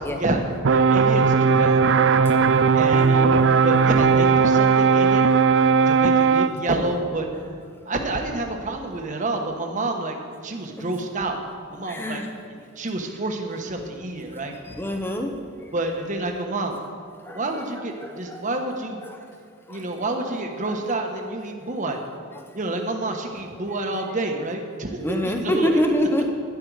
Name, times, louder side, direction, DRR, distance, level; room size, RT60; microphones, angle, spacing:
voice 1, 0.1-1.8 2.8-5.2 5.9-7.3 7.9-10.2 10.4-11.4 11.7-12.2 12.8-14.8 15.7-16.8 17.3-19.0 19.7-22.0 22.5-25.8, right 2 dB, 40° right, 3 dB, 1.1 m, -28 dB
sound 1, 0.6-6.5, right 5 dB, 60° right, 0.4 m, -17 dB
voice 2, 2.9-3.5 10.8-10.9 11.9-12.3 14.8-15.3 17.3-17.4 18.0-18.4 19.0-19.2 19.7-19.8 25.0-26.3, equal, 10° left, 3 dB, 0.8 m, -25 dB
12.0 x 10.5 x 4.8 m, 2.2 s
head